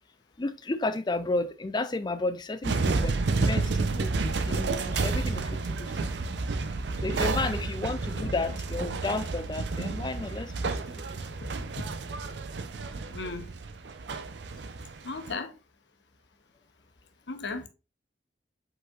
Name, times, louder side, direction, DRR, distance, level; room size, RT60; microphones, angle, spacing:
voice 1, 0.4-6.1 7.0-11.2, left 2 dB, 25° left, 0.4 m, -33 dB
sound 1, 2.6-15.3, right 3 dB, 75° right, 0.5 m, -30 dB
voice 2, 13.1-13.5 15.0-15.5 17.3-17.7, left 3 dB, 75° left, 0.8 m, -35 dB
5.4 x 4.0 x 2.3 m
head